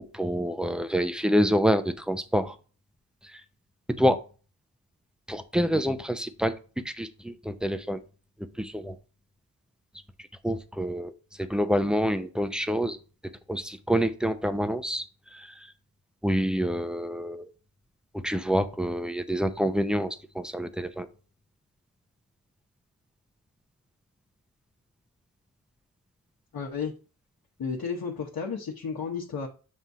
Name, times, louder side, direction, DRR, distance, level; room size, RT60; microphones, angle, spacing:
voice 1, 0.1-2.6 3.3-3.4 4.0-4.2 5.3-6.5 6.8-8.0 8.6-9.0 10.4-11.1 11.4-13.0 13.5-15.0 15.3-15.5 16.2-17.5 18.1-21.1, equal, ahead, 10 dB, 0.6 m, -27 dB
voice 2, 26.5-26.9 27.6-29.5, left 5 dB, 65° left, -2 dB, 1.1 m, -32 dB
7.5 x 2.7 x 4.7 m, 0.36 s
wide cardioid pair, 85°, 38 cm